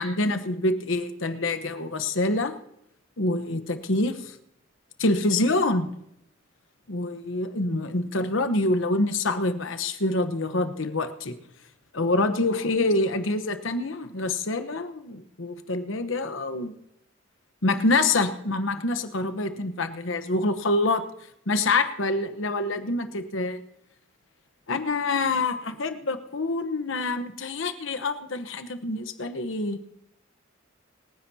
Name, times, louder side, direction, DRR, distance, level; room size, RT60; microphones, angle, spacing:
voice 1, 0.0-2.6 3.2-4.3 5.0-5.9 6.9-11.3 11.9-16.7 17.6-21.0 21.5-23.6 24.7-29.8, left 2 dB, 65° left, 9 dB, 1.1 m, -26 dB
27.0 x 10.0 x 2.8 m, 0.76 s
head